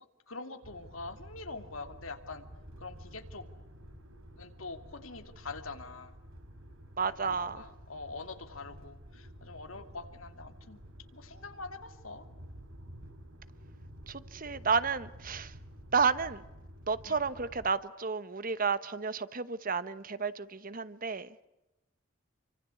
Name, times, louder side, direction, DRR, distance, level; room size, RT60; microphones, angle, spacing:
voice 1, 0.3-2.4 2.8-3.4 4.4-6.2 7.2-10.8 11.1-12.2 17.0-17.3, left 3 dB, 80° left, 2.7 m, -44 dB
sound 1, 0.6-17.7, equal, 85° right, 3.7 m, -51 dB
voice 2, 7.0-7.6 14.1-15.5 15.9-16.4 16.9-21.3, right 5 dB, 45° right, 1.1 m, -31 dB
28.5 x 25.0 x 8.4 m
head